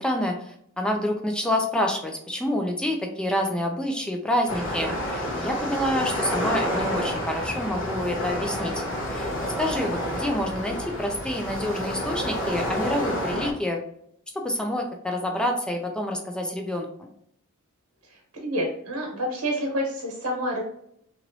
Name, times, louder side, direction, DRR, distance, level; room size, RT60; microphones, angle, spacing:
voice 1, 0.0-8.8 9.1-13.8 14.3-17.1, left 1 dB, 5° left, 2 dB, 0.3 m, -28 dB
sound 1, 4.5-13.5, equal, 60° left, 0.8 m, -29 dB
voice 2, 18.3-20.6, equal, 80° right, -1 dB, 1.3 m, -28 dB
3.0 x 2.9 x 2.6 m, 0.71 s
head